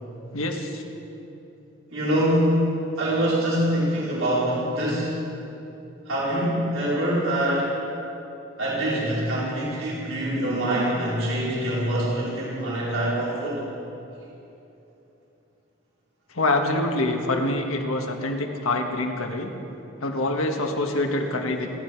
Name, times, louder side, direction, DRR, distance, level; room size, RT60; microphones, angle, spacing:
voice 1, 0.3-0.8 16.3-19.5 20.0-21.7, left 2 dB, 90° left, 3 dB, 1.6 m, -25 dB
voice 2, 1.9-2.7 3.0-5.1 6.1-7.7 8.6-13.6, right 1 dB, 85° right, -7 dB, 4.7 m, -24 dB
27.0 x 11.0 x 4.7 m, 3.0 s
head